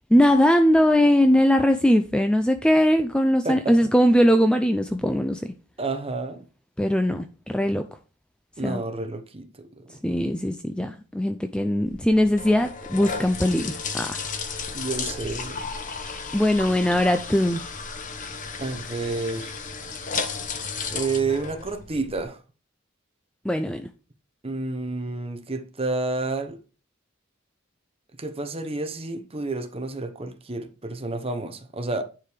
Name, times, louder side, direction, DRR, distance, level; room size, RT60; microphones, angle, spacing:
voice 1, 0.1-5.5 6.8-7.9 8.6-8.8 10.0-14.2 16.3-17.6 23.4-23.9, equal, 5° left, 0.5 m, -20 dB
voice 2, 3.4-3.8 5.8-6.4 8.6-9.8 14.7-15.6 18.6-19.5 20.9-22.4 24.4-26.6 28.2-32.0, right 3 dB, 25° right, 1.0 m, -30 dB
sound 1, 11.9-22.2, left 5 dB, 35° left, 1.2 m, -34 dB
10.0 x 4.7 x 5.1 m
head